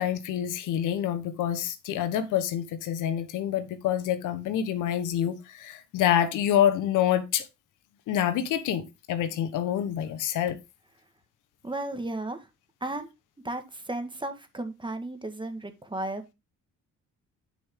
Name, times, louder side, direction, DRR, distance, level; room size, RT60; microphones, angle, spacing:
voice 1, 0.0-7.4 8.1-10.6, left 10 dB, 90° left, 1.3 m, -27 dB
voice 2, 11.6-12.5 12.8-13.1 13.4-16.3, right 2 dB, 15° right, 1.8 m, -34 dB
9.6 x 5.4 x 3.7 m
cardioid pair, 90°, 30 cm